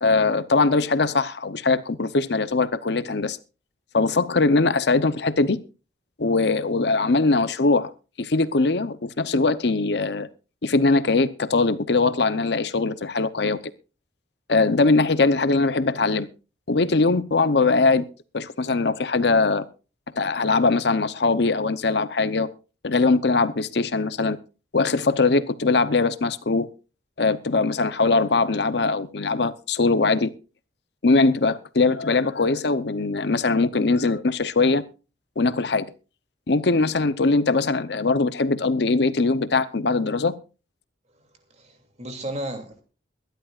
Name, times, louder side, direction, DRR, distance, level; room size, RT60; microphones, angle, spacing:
voice 1, 0.0-3.4 3.9-5.6 6.2-7.9 8.2-10.3 10.6-13.6 14.5-16.3 16.7-18.1 18.3-19.7 20.2-22.5 22.8-24.4 24.7-26.7 27.2-30.3 31.0-34.8 35.4-35.9 36.5-40.4, left 3 dB, 65° left, 14 dB, 0.8 m, -21 dB
voice 2, 41.5-42.8, right 1 dB, 35° right, 5 dB, 2.9 m, -34 dB
23.0 x 11.5 x 2.5 m, 0.33 s
head